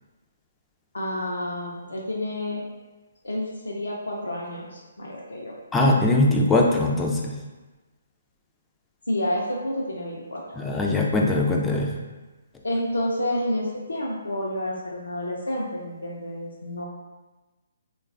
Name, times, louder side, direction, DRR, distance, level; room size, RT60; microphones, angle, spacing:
voice 1, 0.9-2.7 3.2-5.6 9.1-10.4 12.6-16.9, left 1 dB, 80° left, -4 dB, 0.4 m, -29 dB
voice 2, 5.7-7.3 10.6-11.9, left 2 dB, 10° left, -1 dB, 0.3 m, -21 dB
3.1 x 2.2 x 2.4 m, 1.2 s
figure-of-eight pair, 135°, 0 cm